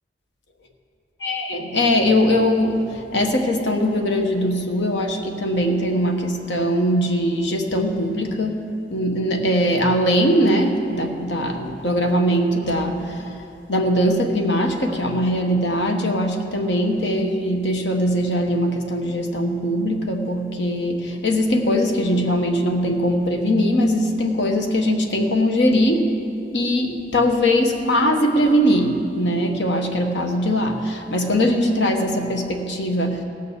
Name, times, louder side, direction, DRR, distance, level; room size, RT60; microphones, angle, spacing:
voice 1, 1.2-8.6 8.9-13.3 13.7-26.1 26.5-33.2, equal, 90° left, 3 dB, 1.2 m, -21 dB
16.5 x 6.7 x 6.8 m, 2.6 s
head